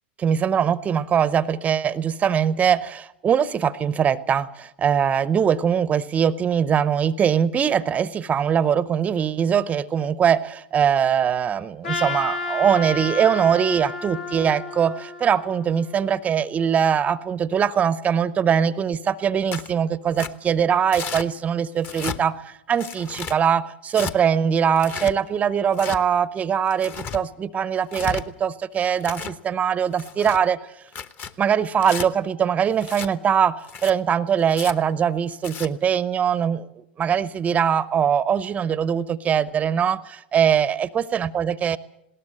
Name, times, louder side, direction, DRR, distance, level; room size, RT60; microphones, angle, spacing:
voice 1, 0.2-30.6 31.4-36.7 37.0-41.8, right 8 dB, 25° right, 18 dB, 0.7 m, -22 dB
Trumpet, 11.8-16.1, left 3 dB, 75° left, 2.8 m, -32 dB
Tearing, 19.5-19.7 20.2-20.3 20.9-21.3 21.8-22.2 22.8-23.4 23.9-24.1 24.8-25.1 25.7-26.0 26.7-27.2 27.8-28.2 28.8-29.4 29.9-30.4 30.9-31.3 31.8-32.1 32.8-33.1 33.6-33.9 34.5-34.7 35.3-35.7, left 6 dB, 30° left, 1.1 m, -33 dB
20.0 x 18.0 x 7.6 m, 0.85 s
hypercardioid pair, 105°, 6 cm